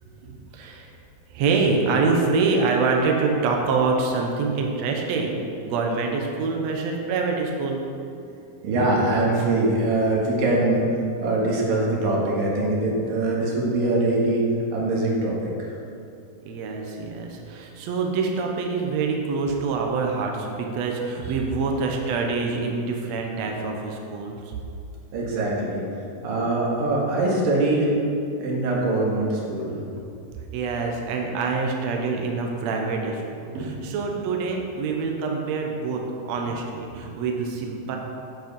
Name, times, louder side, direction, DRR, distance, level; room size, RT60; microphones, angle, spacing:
voice 1, 0.5-0.9 1.3-7.8 16.4-24.6 30.5-38.0, right 4 dB, 90° right, 1 dB, 1.5 m, -25 dB
voice 2, 8.6-10.8 11.2-14.4 14.7-15.7 25.1-25.8 26.2-27.9 28.4-29.8 33.5-33.7, right 2 dB, 70° right, -3 dB, 3.2 m, -23 dB
8.9 x 7.7 x 5.3 m, 2.6 s
omnidirectional pair, 4.4 m